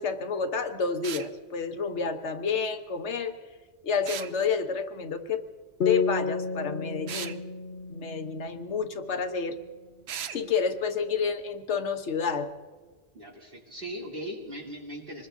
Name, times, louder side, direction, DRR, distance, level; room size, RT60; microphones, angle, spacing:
voice 1, 0.0-3.3 3.8-5.4 5.8-7.4 7.9-9.6 10.3-12.5, left 5 dB, 80° left, 6 dB, 1.3 m, -29 dB
sound 1, 1.0-1.3 4.0-4.3 7.1-7.4 10.1-10.4, right 8 dB, 70° right, 0.9 m, -36 dB
sound 2, 5.8-9.3, left 5 dB, 50° left, 0.9 m, -32 dB
voice 2, 13.1-15.3, equal, 50° right, -3 dB, 2.9 m, -39 dB
25.5 x 20.5 x 2.7 m, 1.3 s
omnidirectional pair, 1.2 m